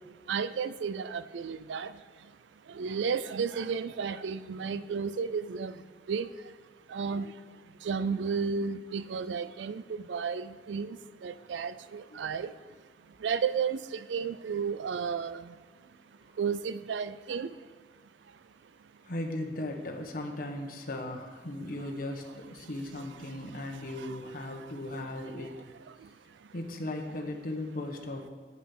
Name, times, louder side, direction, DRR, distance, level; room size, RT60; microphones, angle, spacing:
voice 1, 0.3-1.9 2.7-5.7 6.1-6.3 6.9-7.3 7.8-11.0 11.2-12.5 13.2-15.4 16.4-17.5, right 6 dB, 90° right, 14 dB, 0.4 m, -32 dB
voice 2, 19.0-25.5 26.5-28.3, left 1 dB, 55° left, 2 dB, 1.1 m, -37 dB
8.5 x 8.2 x 6.0 m, 1.5 s
head